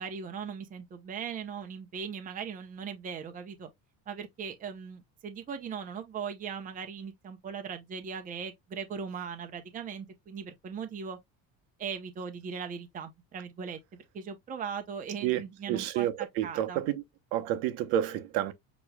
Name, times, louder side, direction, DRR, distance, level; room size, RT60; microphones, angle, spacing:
voice 1, 0.0-3.7 4.1-11.2 11.8-16.8, right 6 dB, 25° right, 0.7 m, -39 dB
voice 2, 15.7-17.0 17.3-18.5, right 12 dB, 90° right, 0.9 m, -29 dB
6.5 x 3.0 x 2.2 m
cardioid pair, 150°, 36 cm